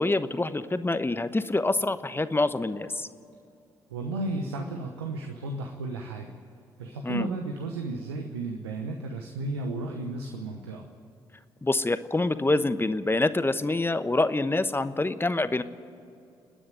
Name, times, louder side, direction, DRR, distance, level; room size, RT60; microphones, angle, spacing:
voice 1, 0.0-3.1 7.0-7.3 11.6-15.6, left 2 dB, 15° left, 12 dB, 1.0 m, -26 dB
voice 2, 3.9-6.4 6.8-10.9, right 2 dB, 90° right, 4 dB, 1.0 m, -33 dB
29.5 x 10.0 x 9.1 m, 2.6 s
hypercardioid pair, 45°, 13 cm